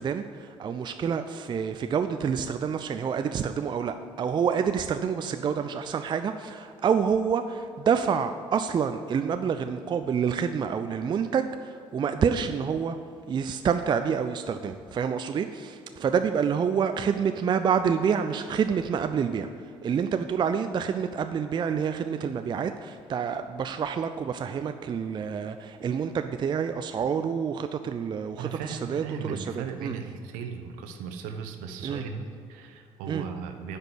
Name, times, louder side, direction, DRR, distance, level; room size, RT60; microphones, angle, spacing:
voice 1, 0.0-13.0 13.3-19.5 19.8-30.0 31.8-32.0 33.1-33.2, right 7 dB, 30° right, 8 dB, 0.4 m, -28 dB
voice 2, 28.4-33.8, right 6 dB, 60° right, 6 dB, 0.9 m, -37 dB
9.7 x 5.2 x 8.2 m, 2.3 s
figure-of-eight pair, 50°, 15 cm